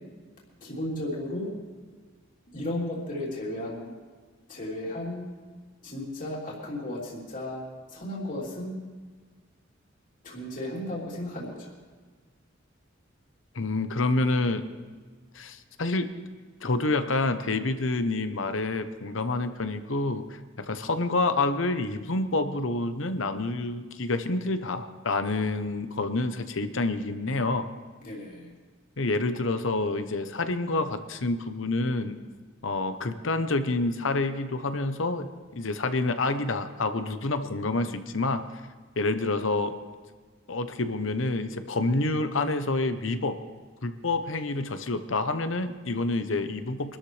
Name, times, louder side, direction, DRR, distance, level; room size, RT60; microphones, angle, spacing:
voice 1, 0.6-1.5 2.5-3.9 4.5-5.3 5.8-8.7 10.2-11.7 28.0-28.6, left 1 dB, 45° left, -4 dB, 3.4 m, -34 dB
voice 2, 13.5-14.6 15.3-16.1 16.6-27.7 29.0-32.2 32.6-38.4 39.0-39.7 40.5-43.4 43.8-47.0, left 2 dB, 70° left, 9 dB, 0.9 m, -28 dB
24.0 x 13.0 x 3.3 m, 1.5 s
head